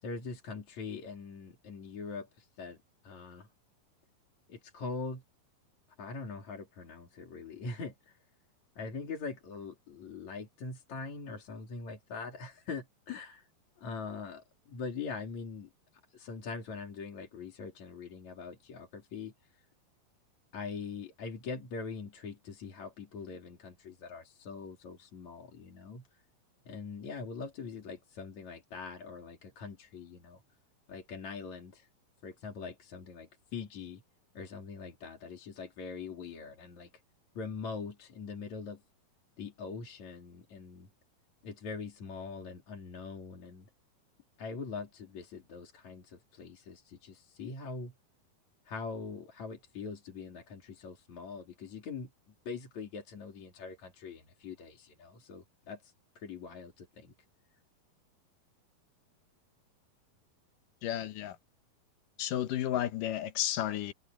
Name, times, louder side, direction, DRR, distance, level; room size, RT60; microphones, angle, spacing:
voice 1, 0.0-2.8 3.0-3.5 4.5-5.2 6.0-8.2 8.8-13.5 13.8-15.7 16.1-19.3 20.5-26.1 26.7-30.4 30.9-31.9 32.2-34.0 34.3-36.9 37.4-38.8 39.4-40.9 41.4-43.7 44.4-47.9 48.7-52.1 52.5-57.1, left 4 dB, 50° left, 4.3 m, -42 dB
voice 2, 60.8-61.4 62.2-63.9, left 12 dB, 70° left, 2.6 m, -32 dB
omnidirectional pair, 4.3 m